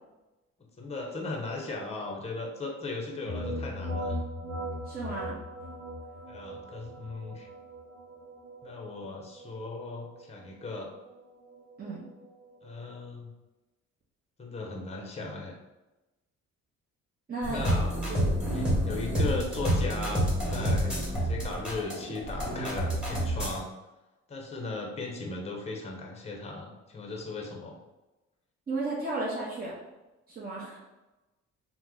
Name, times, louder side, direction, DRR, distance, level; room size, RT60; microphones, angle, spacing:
voice 1, 0.8-4.2 6.3-7.5 8.6-10.9 12.6-13.3 14.4-15.5 17.5-17.9 18.5-23.7 24.3-27.8, left 3 dB, 20° left, 0 dB, 0.7 m, -37 dB
sound 1, 3.3-12.9, equal, 60° right, 1.1 m, -39 dB
voice 2, 4.8-5.4 11.8-12.0 17.3-17.6 18.1-18.3 28.7-29.7 30.3-30.8, right 2 dB, 30° right, -6 dB, 0.8 m, -34 dB
sound 2, 17.4-23.6, equal, 5° right, 1.1 m, -28 dB
3.0 x 2.1 x 3.6 m, 1.1 s
cardioid pair, 90°, 30 cm